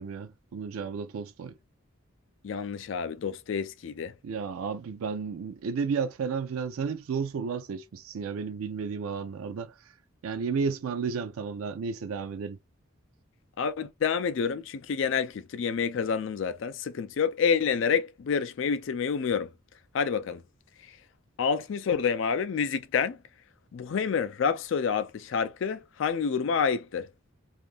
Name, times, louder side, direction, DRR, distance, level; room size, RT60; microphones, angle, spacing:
voice 1, 0.0-1.5 4.2-9.9 10.2-12.6, right 5 dB, 90° right, 0.4 m, -32 dB
voice 2, 2.4-4.1 13.6-19.5 19.9-20.4 20.8-21.0 21.4-23.2 23.7-27.1, left 6 dB, 65° left, 0.4 m, -28 dB
2.5 x 2.4 x 3.3 m
head